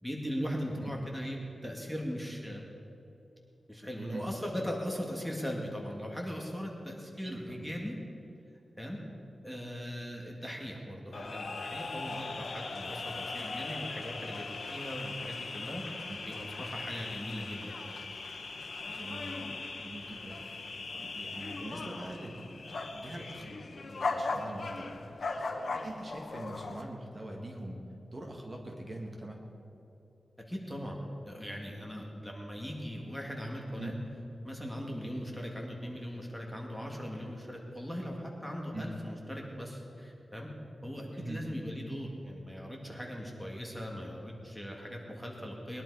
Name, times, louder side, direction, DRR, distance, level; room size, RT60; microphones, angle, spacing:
voice 1, 0.0-2.6 3.7-8.0 8.8-9.0 9.4-15.8 16.2-17.9 30.5-33.9 34.4-40.5 40.8-45.8, equal, 5° left, -1 dB, 1.9 m, -39 dB
voice 2, 7.2-7.6 16.1-16.2 18.9-19.4 19.8-25.0 25.7-29.4 33.8-33.9 38.7-38.9 41.1-41.4, right 1 dB, 30° right, 0 dB, 1.9 m, -43 dB
sound 1, 11.1-26.8, left 3 dB, 65° left, 1.1 m, -39 dB
21.0 x 11.0 x 4.8 m, 2.9 s
wide cardioid pair, 120°, 0 cm